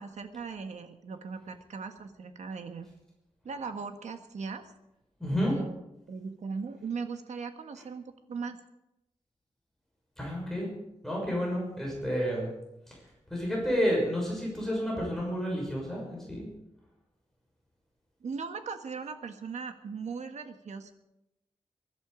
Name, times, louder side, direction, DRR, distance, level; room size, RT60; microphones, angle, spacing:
voice 1, 0.0-2.9 3.4-4.6 5.3-5.8 6.1-8.6 18.2-20.9, right 5 dB, 85° right, 7 dB, 1.5 m, -39 dB
voice 2, 5.2-5.5 10.2-10.7 11.0-12.5 12.9-16.5, equal, 5° left, -3 dB, 6.3 m, -30 dB
23.5 x 11.5 x 5.1 m, 0.90 s
wide cardioid pair, 150°, 12 cm